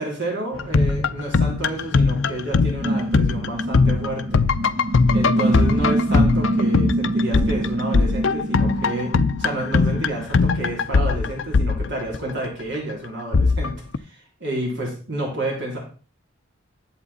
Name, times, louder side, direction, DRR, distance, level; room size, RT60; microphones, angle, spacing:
voice 1, 0.0-4.5 5.1-9.1 9.4-13.7 14.0-15.8, right 1 dB, 55° right, -2 dB, 3.2 m, -29 dB
sound 1, 0.5-12.5 13.3-14.0, left 4 dB, 60° left, 0.5 m, -20 dB
sound 2, 2.8-10.5, right 1 dB, 35° right, 0.4 m, -25 dB
11.0 x 8.0 x 4.2 m, 0.38 s
head